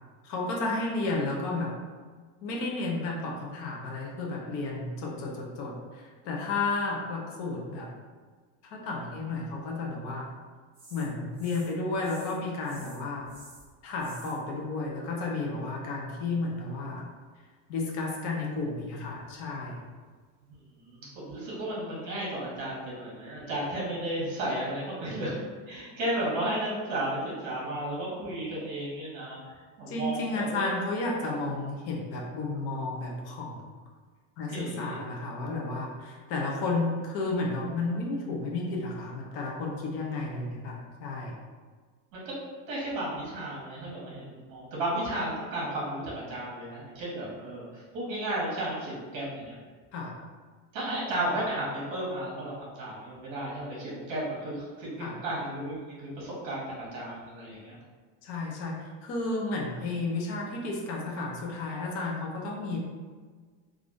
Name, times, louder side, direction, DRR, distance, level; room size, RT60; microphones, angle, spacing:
voice 1, 0.2-1.7 2.4-7.9 8.7-10.3 10.9-13.3 13.8-17.0 17.7-19.8 29.9-33.7 34.4-41.4 49.9-50.2 55.0-55.1 58.2-58.7 59.0-62.8, left 3 dB, 40° left, -1 dB, 0.6 m, -32 dB
sound 1, 10.7-11.7 12.0-12.4 12.6-14.4 18.5-19.5 20.0-20.1, right 1 dB, 15° right, 1.0 m, -52 dB
voice 2, 20.5-25.4 25.7-29.4 29.8-30.7 34.5-35.0 42.1-42.4 42.7-49.6 50.7-57.8, right 1 dB, 50° right, -5 dB, 1.3 m, -34 dB
3.4 x 2.4 x 2.5 m, 1.5 s
cardioid pair, 175°, 39 cm